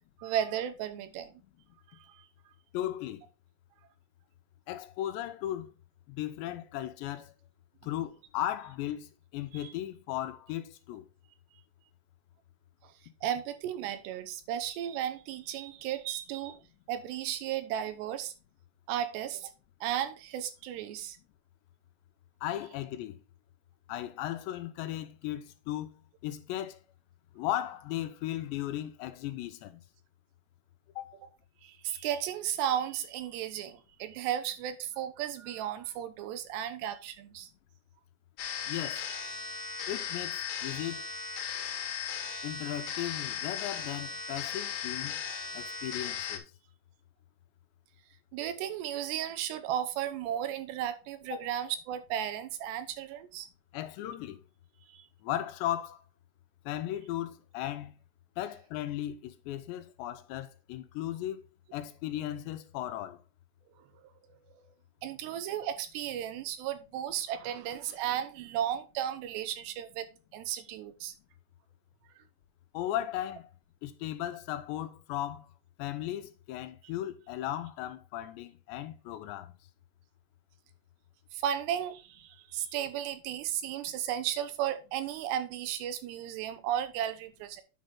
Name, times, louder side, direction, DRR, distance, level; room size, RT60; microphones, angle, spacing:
voice 1, 0.2-1.3 1.9-2.2 9.5-9.7 13.2-16.6 16.9-18.3 18.9-19.5 19.8-21.2 31.6-37.5 38.7-39.0 48.3-53.5 54.9-55.1 63.8-63.9 65.0-70.1 70.3-71.1 81.3-87.6, right 10 dB, 80° right, 3.0 m, -34 dB
voice 2, 2.7-3.2 4.7-5.7 6.1-7.3 7.8-9.1 9.3-11.1 22.4-23.2 23.9-25.9 26.2-26.8 27.4-29.8 31.0-31.2 38.7-39.1 39.9-41.0 42.4-45.2 45.5-46.4 51.3-51.4 53.7-54.4 55.2-56.0 56.7-57.9 58.4-61.4 61.7-63.2 72.7-73.5 73.8-75.5 75.8-79.5, left 13 dB, 90° left, 3.0 m, -36 dB
sound 1, 38.4-46.4, left 7 dB, 65° left, 2.6 m, -37 dB
9.5 x 5.4 x 3.7 m
omnidirectional pair, 4.9 m